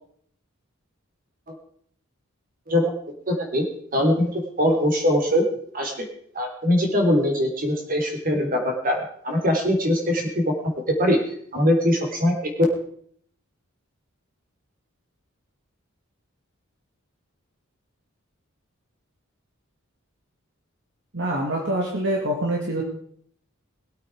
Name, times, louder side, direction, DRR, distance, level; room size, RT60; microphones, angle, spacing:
voice 1, 3.3-3.6 3.9-5.4 5.7-6.1 6.3-9.0 9.2-10.7 11.0-11.2 11.5-12.5, left 1 dB, 45° right, 2 dB, 3.8 m, -22 dB
voice 2, 21.1-22.8, right 1 dB, 65° right, 0 dB, 2.4 m, -25 dB
22.0 x 8.8 x 4.9 m, 0.64 s
head